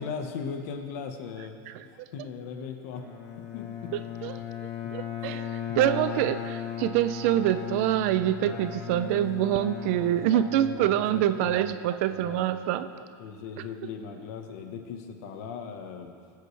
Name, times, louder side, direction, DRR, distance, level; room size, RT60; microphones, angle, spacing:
voice 1, 0.0-3.1 3.4-3.9 8.4-8.6 10.0-11.7 12.1-12.5 12.9-16.1, left 6 dB, 50° left, 5 dB, 1.1 m, -39 dB
voice 2, 1.7-2.1 3.9-4.4 4.9-12.9 13.6-13.7, right 12 dB, 40° right, 12 dB, 0.4 m, -26 dB
Bowed string instrument, 2.9-11.4, left 9 dB, 25° left, 1.5 m, -37 dB
21.0 x 8.4 x 3.3 m, 2.3 s
supercardioid pair, 180°, 11 cm